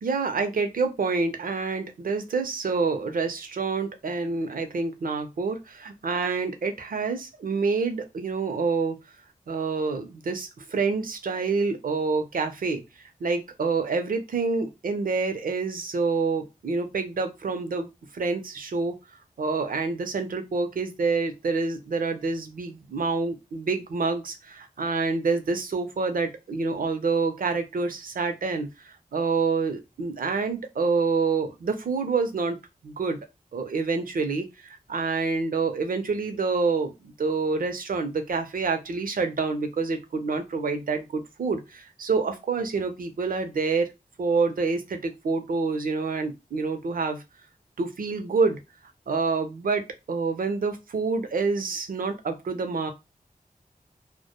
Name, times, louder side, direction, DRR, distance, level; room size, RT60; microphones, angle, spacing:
voice 1, 0.0-9.0 9.5-12.8 13.2-19.0 19.4-32.6 32.8-33.2 33.5-43.9 44.2-47.2 47.8-48.6 49.1-52.9, right 4 dB, 75° right, 6 dB, 0.6 m, -27 dB
2.1 x 2.1 x 2.8 m, 0.23 s
cardioid pair, 45°, 15 cm